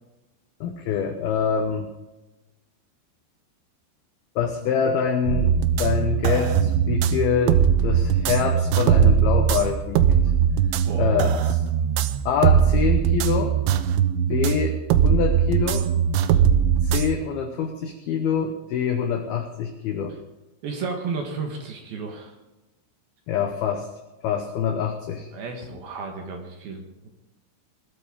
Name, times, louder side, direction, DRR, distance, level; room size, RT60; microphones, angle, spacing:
voice 1, 0.6-1.9 4.4-10.1 11.0-11.6 12.3-13.6 14.3-14.8 15.0-15.9 16.8-20.2 23.3-23.9 24.2-25.3, left 7 dB, 80° left, 5 dB, 2.2 m, -25 dB
sound 1, 5.3-17.2, right 8 dB, 80° right, 2.9 m, -20 dB
voice 2, 10.8-11.2 20.6-22.4 25.3-27.1, right 4 dB, 65° right, 3 dB, 2.8 m, -33 dB
20.5 x 12.5 x 3.7 m, 1.0 s
omnidirectional pair, 5.8 m